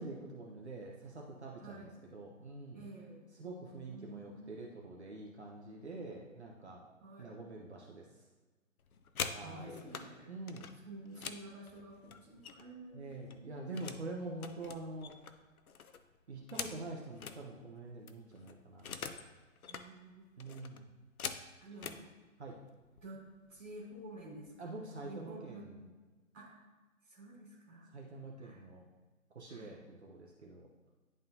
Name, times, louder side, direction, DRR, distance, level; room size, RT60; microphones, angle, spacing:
voice 1, 0.0-2.8 3.4-6.8 7.2-8.1 9.3-9.8 10.3-10.7 12.9-15.1 16.3-19.3 20.4-20.9 22.4-22.6 24.6-25.8 27.9-28.8 29.3-30.7, right 2 dB, 50° right, -2 dB, 0.9 m, -46 dB
voice 2, 1.5-2.0 2.7-3.3 3.7-4.7 7.0-7.5 9.4-10.3 10.8-13.8 19.7-20.3 21.6-22.0 23.0-23.2 23.5-24.7 25.0-25.7 26.3-26.6 27.0-27.9 28.4-28.6 29.5-29.8, right 1 dB, 10° right, -13 dB, 1.7 m, -51 dB
sound 1, 8.8-10.1 10.5-12.8 13.1-14.1 14.4-17.4 17.8-17.9 18.1-19.3 19.6-19.9 20.4-22.0 22.8-23.0 23.4-23.7 24.0-24.5, left 6 dB, 80° left, 0.7 m, -44 dB
11.0 x 3.7 x 2.7 m, 1.3 s
hypercardioid pair, 180°, 42 cm